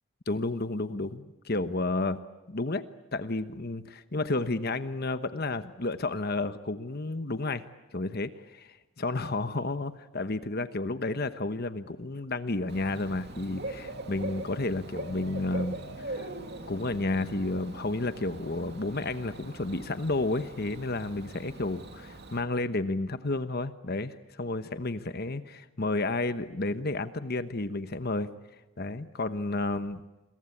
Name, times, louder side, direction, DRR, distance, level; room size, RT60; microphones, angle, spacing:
voice 1, 0.3-2.2 2.5-2.8 3.1-7.6 7.9-16.3 16.7-28.3 28.8-30.0, left 2 dB, 45° left, 11 dB, 1.1 m, -31 dB
Bird / Cricket, 12.7-22.4, right 1 dB, 50° right, 2.8 m, -41 dB
29.0 x 22.5 x 8.6 m, 1.1 s
head